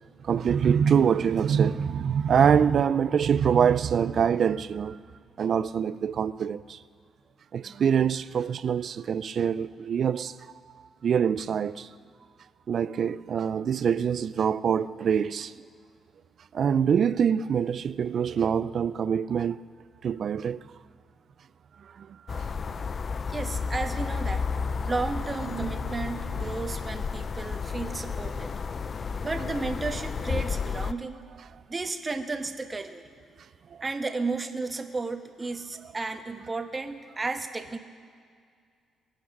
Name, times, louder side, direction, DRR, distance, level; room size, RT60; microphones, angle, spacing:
voice 1, 0.2-5.0 5.4-6.8 7.5-10.4 11.0-11.9 12.7-15.5 16.5-19.6 20.0-20.6 22.0-22.4 25.4-26.0, right 7 dB, 55° right, 0.4 m, -25 dB
sound 1, 22.3-30.9, left 5 dB, 40° left, 0.5 m, -32 dB
voice 2, 23.3-24.5 24.8-28.5 29.2-31.2 31.7-33.0 33.8-37.8, right 3 dB, 25° right, 1.2 m, -33 dB
22.5 x 8.7 x 6.0 m
cardioid pair, 90°, 0 cm